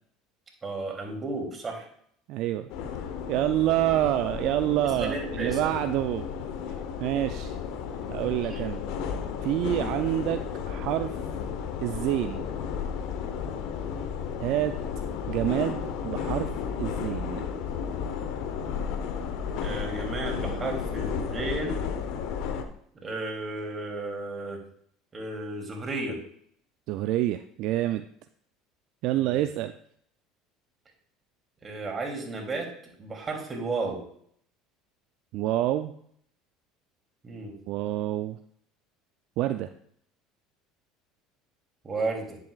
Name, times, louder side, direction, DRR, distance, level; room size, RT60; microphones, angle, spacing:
voice 1, 0.6-1.9 4.8-5.8 8.5-8.6 19.6-21.8 23.0-24.6 25.1-26.2 29.2-29.4 31.6-32.7 33.0-34.0 37.2-37.5 41.8-42.4, right 3 dB, 30° right, 1 dB, 2.9 m, -33 dB
voice 2, 2.3-2.7 3.3-6.3 7.0-7.6 8.1-8.8 9.4-11.1 11.8-12.4 14.4-14.7 15.3-16.5 16.8-17.4 26.9-28.0 29.0-29.7 35.3-35.9 37.7-38.4 39.4-39.7, right 14 dB, 65° right, 10 dB, 0.4 m, -27 dB
sound 1, 2.7-22.6, left 7 dB, 65° left, 0.9 m, -33 dB
10.5 x 7.6 x 2.4 m, 0.65 s
hypercardioid pair, 80°, 0 cm